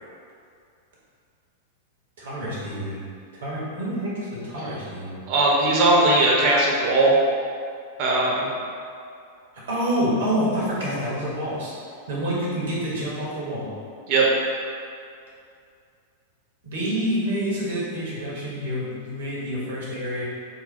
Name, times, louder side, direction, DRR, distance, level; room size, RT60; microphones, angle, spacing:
voice 1, 2.2-3.0 3.3-5.2 9.7-11.7 12.1-13.7 16.6-20.2, equal, 60° right, -6 dB, 1.2 m, -27 dB
voice 2, 5.3-7.1 8.0-8.5 14.1-14.3, right 2 dB, 45° right, -3 dB, 0.9 m, -19 dB
4.0 x 2.2 x 4.2 m, 2.4 s
figure-of-eight pair, 95°, 0 cm